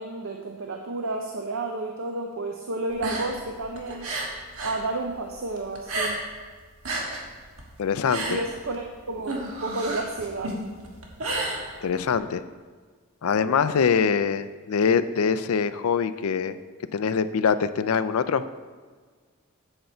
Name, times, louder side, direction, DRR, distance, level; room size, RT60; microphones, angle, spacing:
voice 1, 0.0-4.1 4.6-6.2 8.3-10.5, right 2 dB, 65° right, 3 dB, 0.6 m, -31 dB
sound 1, 2.9-4.8 5.1-6.4 6.7-12.2, right 2 dB, 80° right, 1.5 m, -32 dB
voice 2, 7.8-8.4 11.8-12.4 13.2-16.6 16.9-18.4, left 6 dB, 80° left, 13 dB, 0.4 m, -23 dB
7.9 x 7.8 x 4.4 m, 1.5 s
head